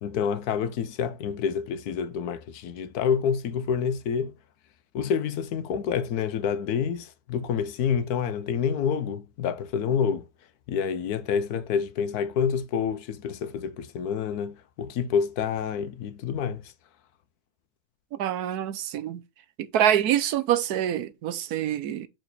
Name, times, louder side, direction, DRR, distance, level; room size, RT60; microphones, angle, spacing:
voice 1, 0.0-4.4 4.9-10.3 10.7-16.7, left 7 dB, 85° left, 1.3 m, -28 dB
voice 2, 18.1-19.2 19.6-22.1, right 10 dB, 90° right, 1.3 m, -26 dB
6.4 x 4.5 x 4.2 m
omnidirectional pair, 1.6 m